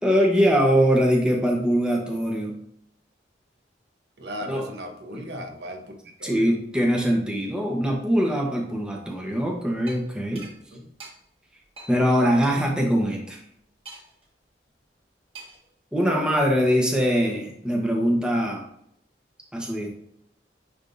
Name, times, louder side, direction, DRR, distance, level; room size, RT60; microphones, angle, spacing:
voice 1, 0.0-2.6 4.5-4.7 6.2-10.5 11.9-13.4 15.9-18.6 19.5-19.9, equal, 5° right, -1 dB, 1.0 m, -22 dB
voice 2, 4.2-6.6 10.5-10.9, equal, 70° right, 3 dB, 1.0 m, -37 dB
sound 1, 9.9-10.0 10.4-10.5 11.0-11.1 11.8-11.9 12.4-12.5 13.9-14.2 15.3-15.7, right 3 dB, 35° right, 1.7 m, -42 dB
10.0 x 3.6 x 2.7 m, 0.71 s
head